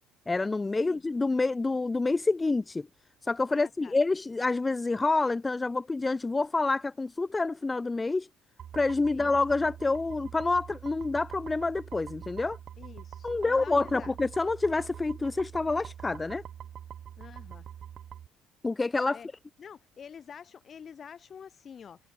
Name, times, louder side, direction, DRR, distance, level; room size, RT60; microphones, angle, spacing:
voice 1, 0.3-2.9 3.2-8.3 8.7-12.6 13.2-16.4 18.6-19.2, left 3 dB, 20° left, 0.4 m, -27 dB
voice 2, 3.5-3.9 9.1-9.3 12.8-14.1 17.2-17.6 19.1-19.3 19.6-22.0, left 7 dB, 40° left, 4.7 m, -47 dB
sound 1, 8.6-18.3, right 9 dB, 55° right, 0.4 m, -45 dB
supercardioid pair, 90°, 0 cm